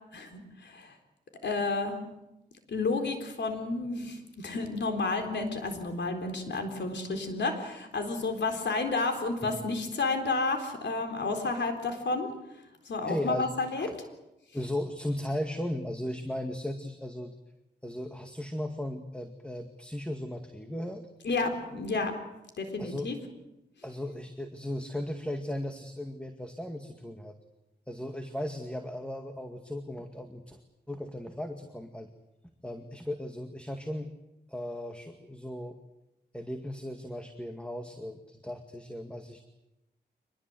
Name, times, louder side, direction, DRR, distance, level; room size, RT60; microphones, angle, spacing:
voice 1, 0.1-0.9 1.4-2.1 2.7-12.3 12.9-13.9 21.2-22.1 22.6-23.1, left 3 dB, 85° left, 5 dB, 4.0 m, -31 dB
voice 2, 13.0-13.5 13.8-13.9 14.5-17.4 17.8-21.1 22.8-23.1 23.8-27.3 27.9-30.6 30.9-32.1 32.6-34.1 34.5-35.8 36.3-39.4, left 1 dB, 5° left, 6 dB, 2.1 m, -36 dB
25.0 x 21.0 x 7.9 m, 0.91 s
wide cardioid pair, 75°, 18 cm